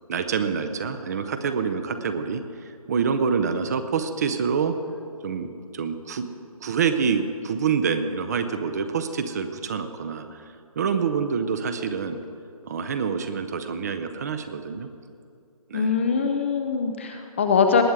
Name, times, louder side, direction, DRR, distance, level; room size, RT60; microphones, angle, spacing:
voice 1, 0.1-2.4 2.9-4.7 5.2-5.5 5.7-6.3 6.6-10.4 10.8-12.2 12.7-14.9 15.7-15.9, right 6 dB, 25° right, 9 dB, 0.6 m, -26 dB
voice 2, 15.7-17.8, left 5 dB, 20° left, 5 dB, 0.4 m, -22 dB
19.0 x 7.7 x 4.7 m, 2.4 s
figure-of-eight pair, 150°, 19 cm